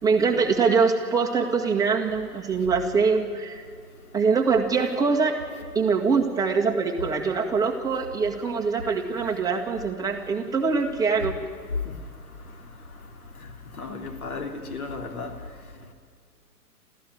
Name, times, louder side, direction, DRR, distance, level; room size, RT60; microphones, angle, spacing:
voice 1, 0.0-3.6 4.1-5.3 5.7-11.4, right 5 dB, 5° right, 1.8 m, -23 dB
voice 2, 13.8-15.3, left 3 dB, 60° left, 3.1 m, -34 dB
28.0 x 14.5 x 9.3 m
figure-of-eight pair, 125°, 48 cm